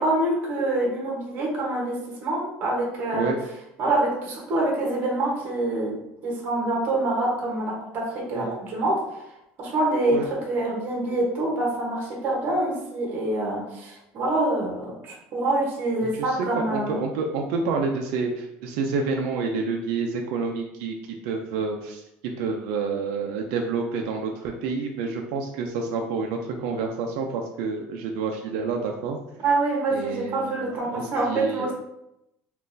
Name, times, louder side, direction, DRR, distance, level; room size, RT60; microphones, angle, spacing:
voice 1, 0.0-3.3 3.8-9.0 9.6-17.0 29.4-31.7, right 2 dB, 40° right, -2 dB, 0.9 m, -26 dB
voice 2, 16.2-21.0 21.2-29.2 29.9-31.7, right 4 dB, 75° right, 2 dB, 0.4 m, -28 dB
3.6 x 2.4 x 2.6 m, 0.86 s
cardioid pair, 155°, 4 cm